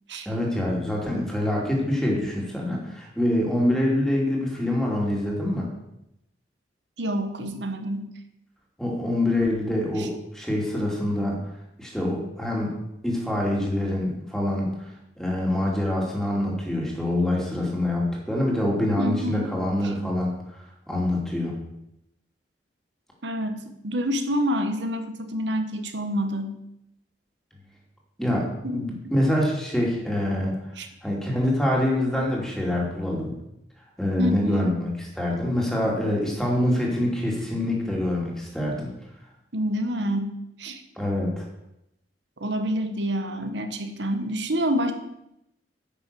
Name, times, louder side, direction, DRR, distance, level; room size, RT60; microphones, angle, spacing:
voice 1, 0.2-5.7 8.8-11.4 11.8-12.7 13.0-14.9 15.2-20.4 20.9-21.5 28.2-30.5 31.0-33.3 34.0-34.9 35.2-38.9 41.0-41.5, left 1 dB, 5° left, -2 dB, 2.8 m, -25 dB
voice 2, 7.0-8.1 10.0-10.1 19.0-19.5 19.8-19.9 23.2-26.6 28.6-28.8 30.8-30.9 34.2-34.8 39.5-40.8 42.4-44.9, equal, 85° right, 7 dB, 1.3 m, -27 dB
9.9 x 6.3 x 6.8 m, 0.84 s
head